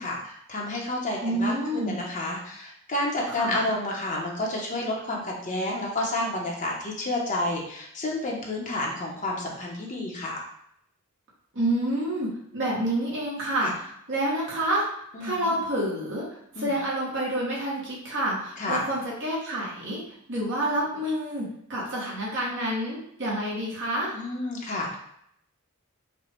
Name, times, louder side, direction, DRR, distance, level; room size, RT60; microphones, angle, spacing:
voice 1, 0.0-10.4 13.6-13.7 15.1-15.5 16.5-16.7 18.6-18.8 24.1-25.0, left 1 dB, 35° left, -2 dB, 0.9 m, -30 dB
voice 2, 1.2-1.9 3.3-3.7 11.5-14.9 15.2-16.3 16.6-20.0 20.3-24.1, right 1 dB, 60° right, -6 dB, 1.6 m, -28 dB
5.1 x 2.3 x 4.5 m, 0.72 s
head